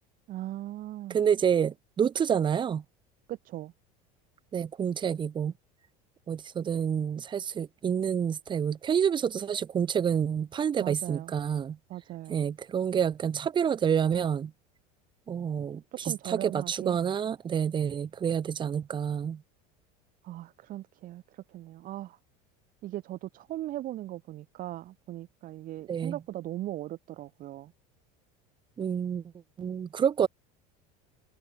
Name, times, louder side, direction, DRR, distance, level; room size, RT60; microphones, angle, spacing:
voice 1, 0.3-1.2 3.3-3.7 10.8-11.3 11.9-12.5 15.9-17.0 20.2-22.2 22.8-27.7, right 14 dB, 45° right, 1.7 m, -39 dB
voice 2, 1.1-2.8 4.5-5.5 6.3-11.8 12.3-14.5 15.3-19.4 25.9-26.2 28.8-29.2 29.6-30.3, right 8 dB, 25° right, 0.9 m, -28 dB
supercardioid pair, 120°, 19 cm